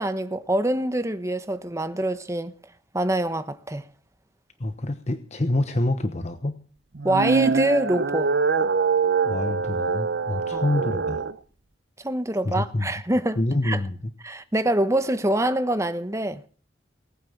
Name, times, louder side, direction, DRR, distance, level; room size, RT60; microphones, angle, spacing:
voice 1, 0.0-2.5 2.9-3.9 7.0-8.3 10.5-10.7 12.0-13.9 14.2-16.4, right 1 dB, 15° right, 1.1 m, -25 dB
voice 2, 4.6-6.6 9.2-11.2 12.4-12.9 13.4-14.1, left 1 dB, 40° left, 1.0 m, -26 dB
sound 1, 6.9-11.3, right 5 dB, 70° right, 0.8 m, -24 dB
18.5 x 9.1 x 7.2 m
head